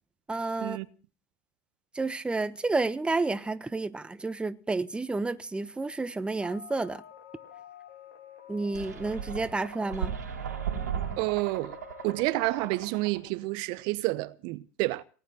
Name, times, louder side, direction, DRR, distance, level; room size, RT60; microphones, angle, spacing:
voice 1, 0.3-0.8 1.9-7.0 8.5-10.1, right 3 dB, 10° right, 1.2 m, -30 dB
sound 1, 6.4-12.8, left 9 dB, 70° left, 3.0 m, -49 dB
sound 2, 8.7-13.3, right 8 dB, 85° right, 2.9 m, -36 dB
voice 2, 11.2-11.8 12.0-15.0, right 21 dB, 60° right, 0.9 m, -29 dB
19.0 x 9.2 x 7.7 m
hypercardioid pair, 85°, 9 cm